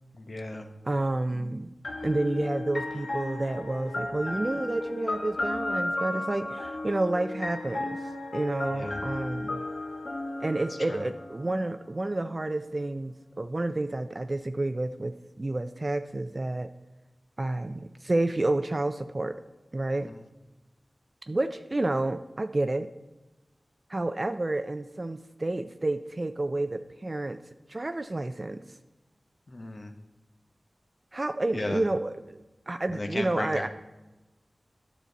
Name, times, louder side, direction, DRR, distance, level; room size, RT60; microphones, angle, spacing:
voice 1, 0.2-0.7 8.7-9.0 10.9-11.0 29.5-29.9 31.5-31.8 32.9-33.7, left 2 dB, 55° left, 5 dB, 1.0 m, -34 dB
voice 2, 0.9-1.7 2.0-8.0 8.3-9.6 10.4-16.7 17.4-19.4 19.7-20.1 21.3-22.9 23.9-27.4 27.7-28.6 31.1-33.7, right 2 dB, 40° right, 9 dB, 0.4 m, -30 dB
sound 1, 1.8-11.6, left 2 dB, 75° left, 1.1 m, -34 dB
10.0 x 6.7 x 4.0 m, 1.1 s
wide cardioid pair, 60°, 0 cm